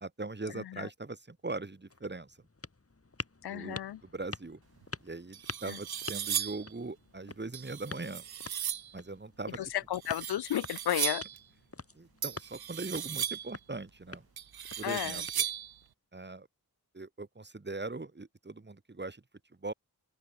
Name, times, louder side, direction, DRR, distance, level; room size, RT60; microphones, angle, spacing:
voice 1, 0.0-2.4 3.5-4.6 5.0-8.2 8.9-9.6 11.9-14.2 14.8-15.2 16.1-16.5 16.9-19.2 19.6-19.7, right 3 dB, 30° right, 2.7 m, -40 dB
voice 2, 0.5-0.9 3.4-4.0 5.7-5.8 9.6-11.2 14.8-15.2, left 12 dB, 85° left, 0.5 m, -33 dB
sound 1, 1.4-15.9, left 3 dB, 40° left, 6.4 m, -48 dB
sound 2, 4.8-4.9 5.3-6.7 7.5-8.9 9.9-11.4 12.2-13.6 14.4-15.8, right 9 dB, 75° right, 0.7 m, -36 dB
open air
wide cardioid pair, 95°, 37 cm